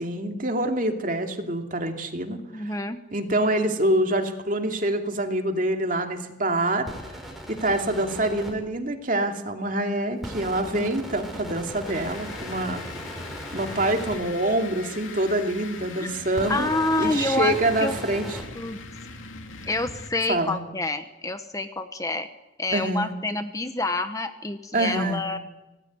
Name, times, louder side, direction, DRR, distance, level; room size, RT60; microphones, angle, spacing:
voice 1, 0.0-2.7 3.1-6.9 7.5-12.8 13.5-16.7 17.0-18.4 20.3-20.6 22.7-23.1 24.7-25.2, right 1 dB, 40° right, 4 dB, 2.7 m, -26 dB
voice 2, 2.5-3.0 10.6-10.9 16.0-16.1 16.5-17.6 17.8-17.9 18.5-18.8 19.7-22.3 22.6-25.4, left 2 dB, 15° left, 9 dB, 1.0 m, -27 dB
sound 1, 6.9-8.5 10.2-14.2 16.3-18.4, equal, ahead, 5.0 m, -37 dB
sound 2, 11.9-20.4, left 4 dB, 90° left, 2.7 m, -41 dB
25.5 x 18.5 x 9.5 m, 1.0 s
head